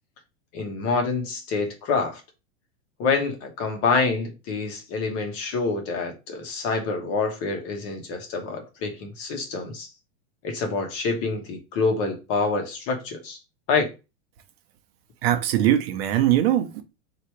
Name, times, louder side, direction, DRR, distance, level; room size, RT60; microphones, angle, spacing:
voice 1, 0.5-2.2 3.0-9.9 10.4-13.4 13.7-13.9, left 4 dB, 40° left, 1.2 m, -26 dB
voice 2, 15.2-16.8, right 12 dB, 55° right, 0.8 m, -21 dB
3.2 x 2.9 x 4.4 m
supercardioid pair, 150°, 36 cm